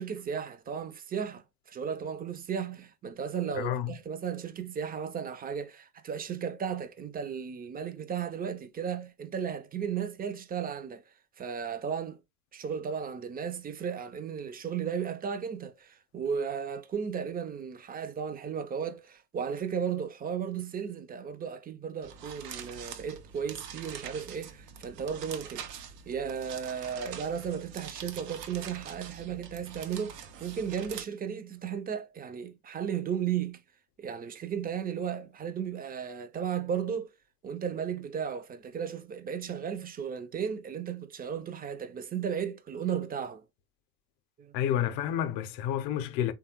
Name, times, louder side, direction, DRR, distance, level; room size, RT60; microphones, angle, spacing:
voice 1, 0.0-11.0 11.4-12.2 12.5-25.7 26.1-33.6 34.0-37.1 37.4-43.4 44.4-44.5, right 7 dB, 20° right, 0.4 m, -35 dB
voice 2, 3.5-3.9 44.5-46.3, left 10 dB, 60° left, 0.7 m, -30 dB
sound 1, 22.0-31.0, right 7 dB, 85° right, 0.6 m, -44 dB
3.3 x 2.3 x 2.9 m
hypercardioid pair, 55°, 47 cm